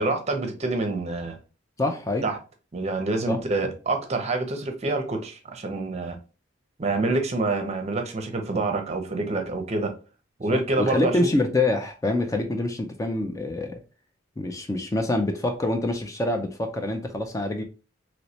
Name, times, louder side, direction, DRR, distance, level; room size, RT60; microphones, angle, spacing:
voice 1, 0.0-1.4 2.2-2.4 2.7-6.2 6.8-9.9 10.4-11.3, right 2 dB, 35° right, 0.6 m, -27 dB
voice 2, 1.8-2.3 3.3-3.4 10.5-13.8 14.4-17.6, left 2 dB, 15° left, 0.3 m, -26 dB
3.1 x 3.0 x 2.7 m
head